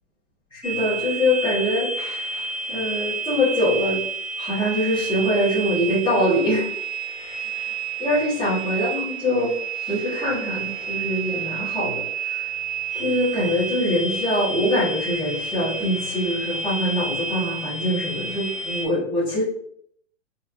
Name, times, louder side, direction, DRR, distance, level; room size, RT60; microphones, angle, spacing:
voice 1, 0.5-2.3 2.7-4.0 4.4-6.7 7.2-7.4 8.0-9.5 9.9-12.5 12.9-19.4, left 1 dB, 10° left, -13 dB, 1.0 m, -24 dB
sound 1, 0.6-18.8, right 4 dB, 10° right, 0.5 m, -30 dB
4.2 x 2.6 x 2.4 m, 0.67 s
hypercardioid pair, 155°, 39 cm